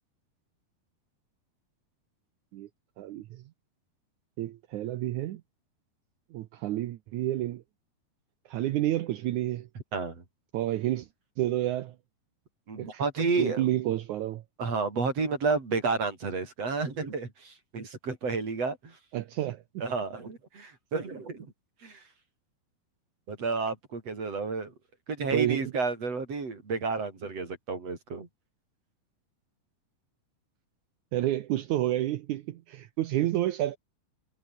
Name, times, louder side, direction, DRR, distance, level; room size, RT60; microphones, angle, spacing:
voice 1, 3.0-3.4 4.4-5.4 6.3-7.6 8.5-9.7 10.5-11.1 11.4-11.9 12.8-13.0 13.4-14.4 19.1-19.6 25.3-25.7 31.1-33.8, right 14 dB, 80° right, 1.7 m, -29 dB
voice 2, 9.9-10.2 12.7-13.6 14.6-19.0 19.8-21.5 21.8-22.0 23.3-24.7 25.1-28.3, right 4 dB, 40° right, 5.7 m, -31 dB
omnidirectional pair, 4.5 m